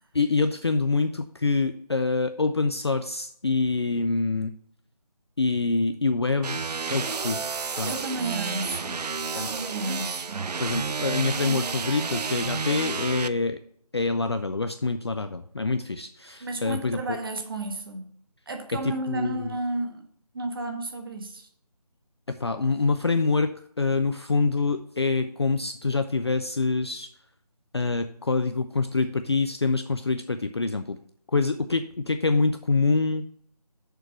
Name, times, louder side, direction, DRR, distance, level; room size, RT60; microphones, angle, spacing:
voice 1, 0.1-4.5 5.4-6.6 6.9-7.4 7.8-7.9 9.3-9.5 10.6-13.6 13.9-17.2 18.8-19.6 22.3-27.1 27.7-31.0 31.3-33.2, left 3 dB, 40° left, 0.4 m, -26 dB
sound 1, 6.4-13.3, right 5 dB, 80° right, 0.5 m, -31 dB
voice 2, 7.8-9.0 9.3-10.5 16.4-18.1 18.5-20.1 20.3-21.5, right 2 dB, 35° right, 1.0 m, -32 dB
6.7 x 4.6 x 6.6 m
figure-of-eight pair, 165°, 20 cm